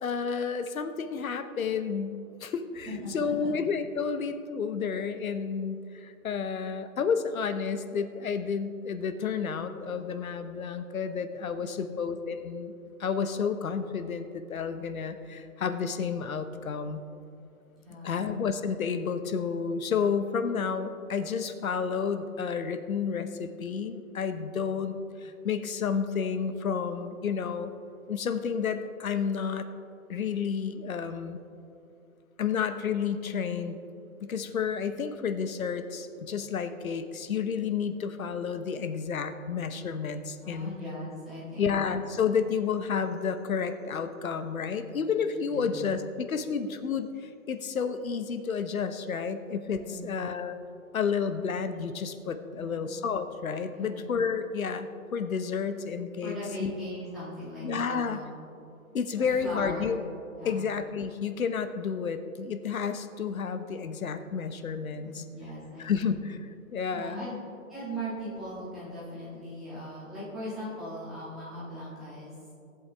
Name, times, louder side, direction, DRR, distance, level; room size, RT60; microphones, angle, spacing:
voice 1, 0.0-12.7 13.0-17.0 18.0-25.0 25.2-27.7 28.1-29.7 30.1-31.4 32.4-33.8 34.2-40.8 41.6-50.5 50.9-56.7 57.6-58.2 58.9-60.0 60.4-65.2 65.8-66.4 66.7-67.3, left 6 dB, 80° left, 9 dB, 0.9 m, -31 dB
voice 2, 2.9-3.5 11.6-12.0 17.8-18.2 40.4-41.7 45.5-45.8 49.8-50.2 52.5-52.8 53.7-54.0 56.2-58.3 58.9-59.9 60.4-60.6 65.0-66.1 66.9-67.4 67.7-72.3, equal, ahead, -12 dB, 1.8 m, -39 dB
18.0 x 8.1 x 3.4 m, 2.7 s
hypercardioid pair, 175°, 41 cm